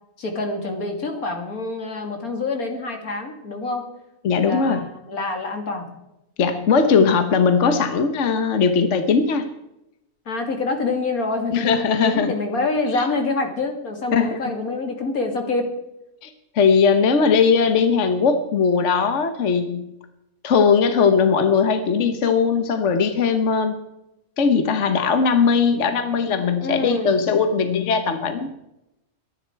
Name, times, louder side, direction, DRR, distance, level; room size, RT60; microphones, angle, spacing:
voice 1, 0.2-3.9 4.4-5.9 10.3-15.7 26.6-27.2, left 3 dB, 80° left, 4 dB, 2.9 m, -26 dB
voice 2, 4.2-4.9 6.4-9.5 11.5-12.3 12.9-13.0 14.1-14.4 16.2-19.9 20.4-23.8 24.4-28.5, left 5 dB, 60° left, 8 dB, 1.3 m, -19 dB
22.0 x 11.0 x 4.6 m, 0.88 s
omnidirectional pair, 1.5 m